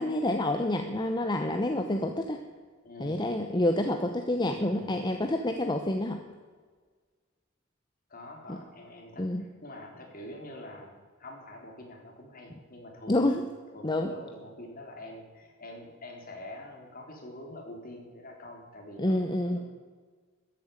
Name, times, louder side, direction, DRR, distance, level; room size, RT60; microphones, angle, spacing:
voice 1, 0.0-2.4 3.0-6.2 8.5-8.6 9.2-9.4 13.1-13.4 13.8-14.1 19.0-19.6, left 1 dB, 20° left, 5 dB, 0.8 m, -28 dB
voice 2, 2.8-3.4 4.4-4.9 8.1-13.4 13.7-19.6, left 1 dB, 45° left, 1 dB, 3.5 m, -45 dB
13.5 x 8.8 x 8.2 m, 1.5 s
head